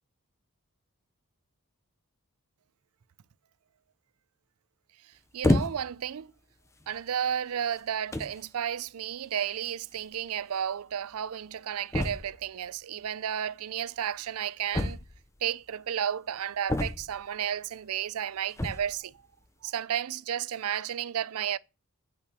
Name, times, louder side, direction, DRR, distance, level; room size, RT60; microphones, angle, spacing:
voice 1, 5.3-6.3 6.9-15.0 15.4-19.1 19.6-21.6, right 9 dB, 75° right, 0.4 m, -32 dB
sound 1, 5.4-6.0 6.8-7.0 7.8-7.9 8.1-8.4 9.6-9.7 10.0-10.1 10.3-10.4 11.9-12.5 14.7-15.4 16.7-17.3 18.5-19.0, left 1 dB, 15° left, 0.6 m, -29 dB
8.4 x 5.7 x 6.2 m
head